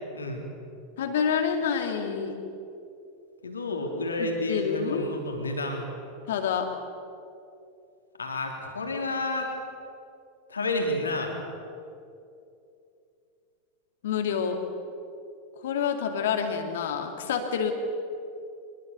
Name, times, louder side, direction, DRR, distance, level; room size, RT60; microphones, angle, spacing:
voice 1, 0.1-0.5 3.4-5.8 8.2-9.5 10.5-11.3, left 2 dB, 75° left, 2 dB, 3.6 m, -30 dB
voice 2, 1.0-2.3 4.2-5.1 6.3-6.7 14.0-14.6 15.6-17.7, left 7 dB, 60° left, 5 dB, 2.5 m, -28 dB
25.5 x 20.5 x 6.9 m, 2.6 s
figure-of-eight pair, 85°, 0 cm